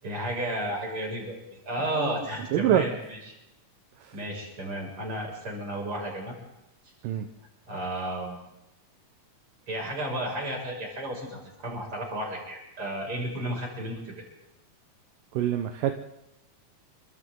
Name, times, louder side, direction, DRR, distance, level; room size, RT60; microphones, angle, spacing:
voice 1, 0.0-3.2 4.1-6.4 7.7-8.4 9.7-14.1, right 1 dB, 40° right, -1 dB, 7.2 m, -33 dB
voice 2, 2.5-2.9 7.0-7.3 15.3-15.9, right 11 dB, 80° right, 6 dB, 2.6 m, -24 dB
29.5 x 24.5 x 3.9 m, 0.93 s
omnidirectional pair, 3.9 m